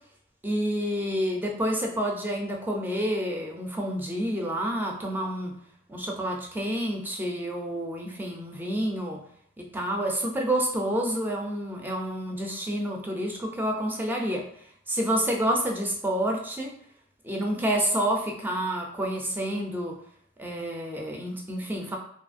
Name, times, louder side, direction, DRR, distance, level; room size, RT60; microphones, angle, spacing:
voice 1, 0.4-5.5 5.9-9.2 9.6-14.4 14.9-16.7 17.2-20.0 20.4-22.0, right 1 dB, 10° right, 0 dB, 0.4 m, -29 dB
2.9 x 2.4 x 2.5 m, 0.68 s
head